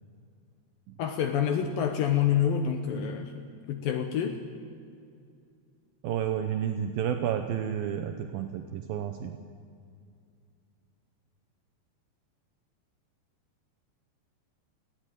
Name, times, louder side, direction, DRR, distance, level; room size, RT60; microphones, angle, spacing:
voice 1, 1.0-3.3 3.7-4.4, left 8 dB, 75° left, 6 dB, 2.2 m, -27 dB
voice 2, 6.0-9.3, right 9 dB, 80° right, 7 dB, 2.2 m, -31 dB
19.5 x 15.5 x 9.2 m, 2.3 s
omnidirectional pair, 5.1 m